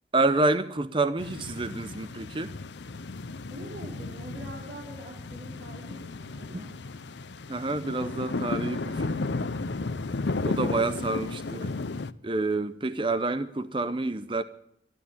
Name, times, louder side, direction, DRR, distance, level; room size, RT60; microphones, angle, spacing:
voice 1, 0.1-2.5 6.5-6.6 7.5-9.2 10.4-11.8 12.2-14.4, right 2 dB, 30° right, 0.7 m, -28 dB
sound 1, 1.2-12.1, left 3 dB, 80° left, 0.7 m, -34 dB
voice 2, 3.5-6.7 10.6-10.9, right 1 dB, 90° right, 5.1 m, -44 dB
13.0 x 12.0 x 8.6 m
head